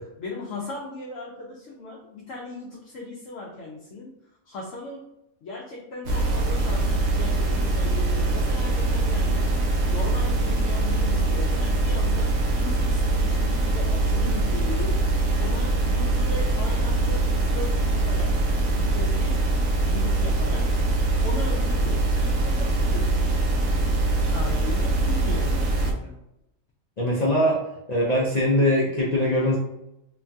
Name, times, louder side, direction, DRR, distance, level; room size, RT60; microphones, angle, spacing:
voice 1, 0.2-4.1 4.4-5.1 5.4-9.5 9.9-15.0 15.4-18.3 18.7-19.4 19.9-20.7 21.2-23.1 23.5-26.2, left 3 dB, 75° left, -3 dB, 0.9 m, -37 dB
sound 1, 6.1-25.9, right 2 dB, 85° right, 1.0 m, -23 dB
voice 2, 27.0-27.6 27.9-29.6, left 1 dB, 50° left, -7 dB, 0.5 m, -21 dB
3.0 x 2.2 x 2.5 m, 0.86 s
omnidirectional pair, 1.3 m